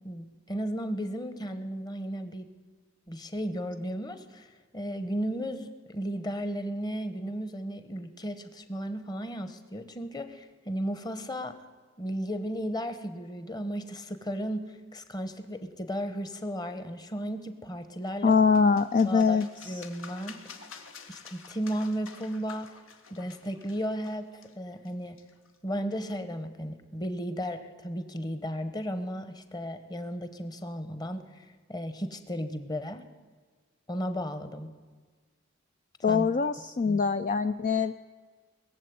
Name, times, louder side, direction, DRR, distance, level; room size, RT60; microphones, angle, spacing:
voice 1, 0.0-2.5 3.1-11.6 12.0-18.4 19.0-19.4 19.6-20.4 21.1-22.7 23.1-25.2 25.6-33.0 33.9-34.7 36.1-36.3 36.9-37.0, equal, 20° left, 10 dB, 1.0 m, -34 dB
sound 1, 18.0-25.6, left 5 dB, 80° left, 1.6 m, -50 dB
voice 2, 18.2-19.8 36.0-37.9, left 5 dB, 40° left, 10 dB, 0.4 m, -24 dB
20.5 x 7.6 x 9.3 m, 1.5 s
head